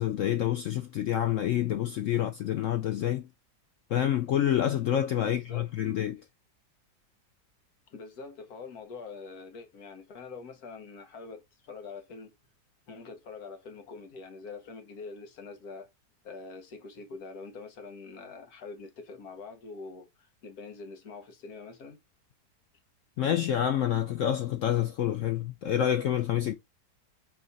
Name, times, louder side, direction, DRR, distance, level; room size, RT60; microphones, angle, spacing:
voice 1, 0.0-3.3 3.9-6.2 23.2-26.5, left 11 dB, 85° left, 0.6 m, -27 dB
voice 2, 5.2-5.7 7.9-12.4 12.9-15.9 16.2-22.0, left 4 dB, 60° left, 1.5 m, -44 dB
4.5 x 2.9 x 3.9 m
omnidirectional pair, 1.9 m